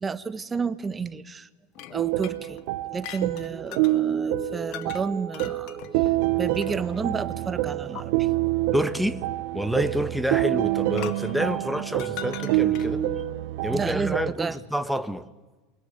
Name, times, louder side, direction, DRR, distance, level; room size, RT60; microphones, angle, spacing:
voice 1, 0.0-1.5 1.9-2.6 2.9-8.3 11.9-12.1 13.7-14.6, right 5 dB, 20° right, 1.5 m, -31 dB
sound 1, 1.8-4.0 4.7-5.0 5.3-7.1 8.0-8.1 10.9-13.1, left 14 dB, 60° left, 1.8 m, -41 dB
sound 2, 1.9-14.3, right 16 dB, 65° right, 1.3 m, -27 dB
voice 2, 8.7-9.2 9.5-13.0 13.6-15.3, equal, ahead, 1.4 m, -28 dB
28.0 x 22.5 x 9.4 m
hypercardioid pair, 85°, 0 cm